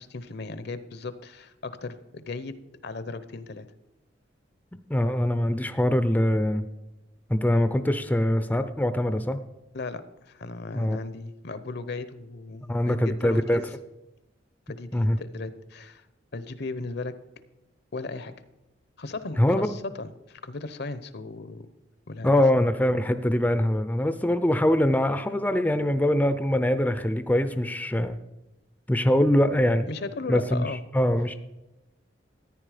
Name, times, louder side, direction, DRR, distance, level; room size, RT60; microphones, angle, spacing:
voice 1, 0.0-2.6 2.8-3.7 9.7-13.6 14.7-16.0 16.3-17.1 17.9-18.3 19.0-21.7 22.1-22.4 29.9-30.8, left 3 dB, 60° left, 13 dB, 0.8 m, -36 dB
voice 2, 4.7-6.6 7.3-9.4 10.7-11.0 12.7-13.6 14.9-15.2 19.4-19.7 22.2-28.2 28.9-29.9 30.3-31.4, left 1 dB, 10° left, 10 dB, 0.5 m, -23 dB
14.0 x 9.8 x 5.0 m, 0.97 s
head